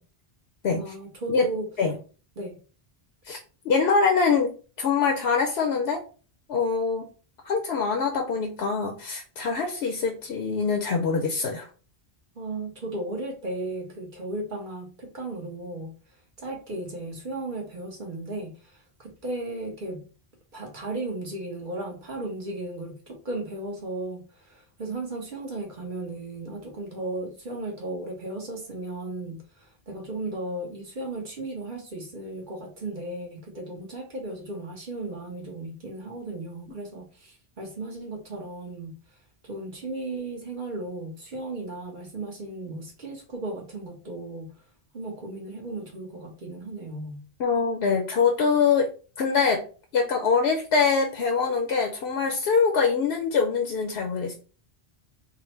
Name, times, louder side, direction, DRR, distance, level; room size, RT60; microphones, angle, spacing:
voice 1, 0.8-1.7 2.4-2.6 12.4-15.9 16.4-20.0 20.5-39.0 39.4-44.5 44.9-47.2, right 2 dB, 50° right, 1.2 m, -35 dB
voice 2, 3.6-6.0 6.5-7.1 7.4-11.7 47.4-48.9 49.2-49.6 49.9-54.3, left 5 dB, 80° left, 0.9 m, -24 dB
3.8 x 2.1 x 4.3 m
omnidirectional pair, 1.1 m